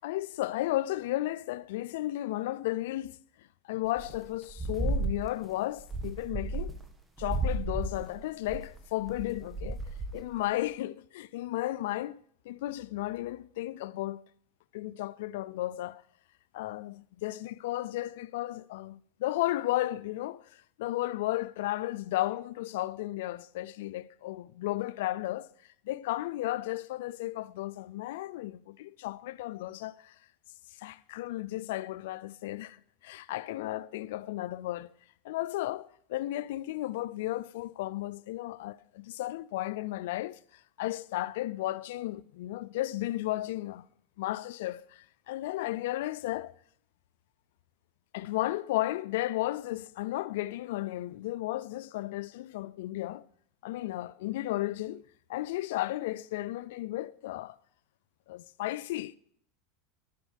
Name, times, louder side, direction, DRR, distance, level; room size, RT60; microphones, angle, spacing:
voice 1, 0.0-6.8 7.2-9.8 10.1-12.2 12.5-14.2 14.7-16.0 16.5-25.5 25.8-30.1 30.8-34.9 35.2-43.9 44.2-46.5 48.1-53.3 53.6-55.0 55.3-57.6 58.3-59.2, left 16 dB, 75° left, 0.4 m, -34 dB
sound 1, 4.0-4.2 4.5-5.4 5.8-6.9 7.2-10.4, right 2 dB, 15° right, 1.5 m, -33 dB
13.0 x 6.4 x 5.2 m
supercardioid pair, 110°, 0 cm